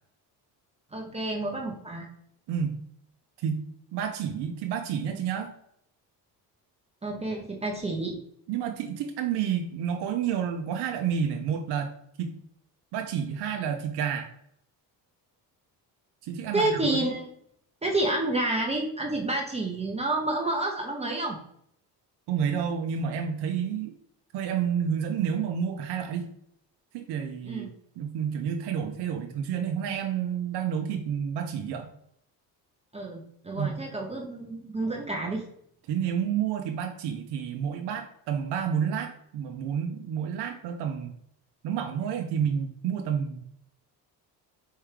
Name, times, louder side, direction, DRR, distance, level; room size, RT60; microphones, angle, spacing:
voice 1, 0.9-2.1 7.0-8.2 16.5-17.3 17.8-21.4 27.5-27.7 32.9-35.4, right 2 dB, 15° right, 0 dB, 0.7 m, -29 dB
voice 2, 3.9-5.5 8.5-11.9 12.2-12.4 12.9-14.3 16.2-17.0 22.3-23.9 24.3-26.3 26.9-27.7 28.0-31.9 33.6-33.8 35.9-41.1 41.6-43.4, right 8 dB, 75° right, 4 dB, 0.7 m, -30 dB
4.5 x 3.5 x 3.2 m, 0.70 s
cardioid pair, 115°, 41 cm